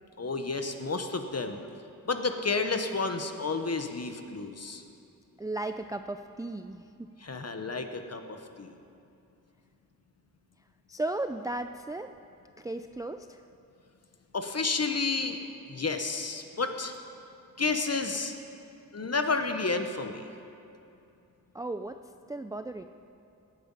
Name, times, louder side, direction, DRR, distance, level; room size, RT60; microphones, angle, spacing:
voice 1, 0.2-1.6 2.1-4.8 7.2-8.7 14.3-15.4 15.7-16.9 17.6-18.3 18.9-20.3, left 4 dB, 45° left, 7 dB, 1.0 m, -31 dB
voice 2, 5.4-7.1 10.9-12.1 12.6-13.4 21.5-22.0 22.3-22.8, right 2 dB, 10° right, 8 dB, 0.3 m, -35 dB
18.0 x 9.2 x 5.6 m, 2.7 s
wide cardioid pair, 85°, 34 cm